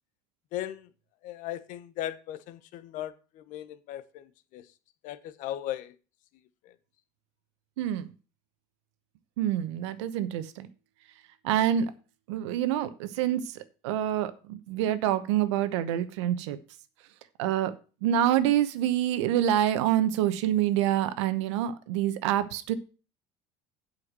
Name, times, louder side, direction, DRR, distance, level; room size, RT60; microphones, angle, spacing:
voice 1, 0.5-0.9 1.2-4.7 5.0-5.9 6.6-6.7, left 12 dB, 65° left, 1.0 m, -37 dB
voice 2, 7.8-8.1 9.4-10.7 11.4-11.9 12.3-13.4 13.8-16.6 17.4-17.7 18.0-22.8, right 11 dB, 90° right, 1.0 m, -26 dB
8.1 x 5.7 x 7.5 m
supercardioid pair, 100°, 15 cm